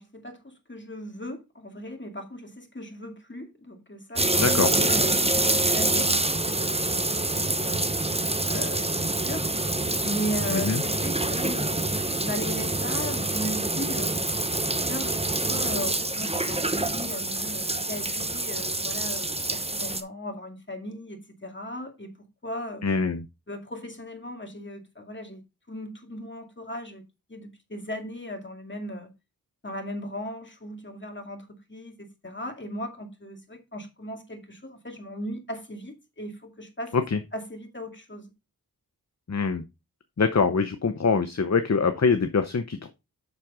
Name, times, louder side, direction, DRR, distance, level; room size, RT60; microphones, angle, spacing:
voice 1, 0.0-4.5 4.8-7.9 8.4-9.5 10.0-14.2 14.8-22.1 22.4-22.8 23.5-25.4 25.7-27.0 27.3-29.1 29.6-36.9 37.3-38.3, left 1 dB, 30° left, 2.3 m, -37 dB
sound 1, 4.2-20.0, right 2 dB, 15° right, 0.8 m, -26 dB
voice 2, 4.4-4.7 10.5-10.8 22.8-23.2 36.9-37.2 39.3-39.6 40.2-42.9, left 5 dB, 45° left, 0.7 m, -24 dB
7.5 x 6.1 x 3.6 m
wide cardioid pair, 55°, 36 cm